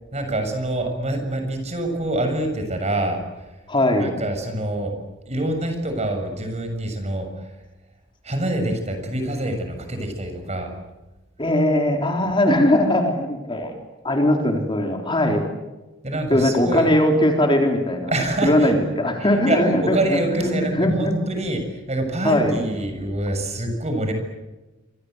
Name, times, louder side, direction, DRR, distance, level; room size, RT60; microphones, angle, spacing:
voice 1, 0.1-3.4 4.0-5.0 5.3-7.3 8.2-10.7 16.0-16.9 18.1-18.7 19.5-24.1, right 1 dB, 35° right, 6 dB, 6.9 m, -26 dB
voice 2, 3.7-4.1 11.4-13.7 14.0-15.4 16.3-18.1 18.4-21.2 22.2-22.6, left 1 dB, 25° left, 3 dB, 3.9 m, -20 dB
28.5 x 26.0 x 8.1 m, 1.1 s
head